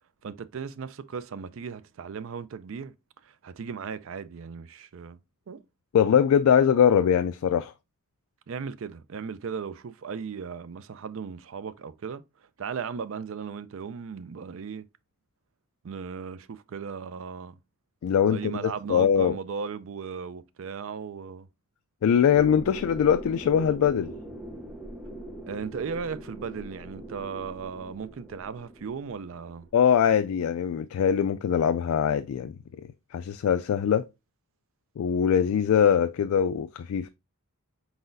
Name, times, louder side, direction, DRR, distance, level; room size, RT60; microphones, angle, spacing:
voice 1, 0.2-2.9 3.2-5.2 5.5-5.6 8.5-14.8 15.8-17.6 18.3-21.5 25.5-29.7, right 6 dB, 65° right, 0.4 m, -37 dB
voice 2, 5.9-7.7 18.0-19.3 22.0-24.1 29.7-32.5 33.1-34.0 35.0-37.1, left 8 dB, 80° left, 0.3 m, -22 dB
sound 1, 22.3-29.7, equal, 5° right, 0.7 m, -42 dB
4.8 x 4.0 x 2.6 m
head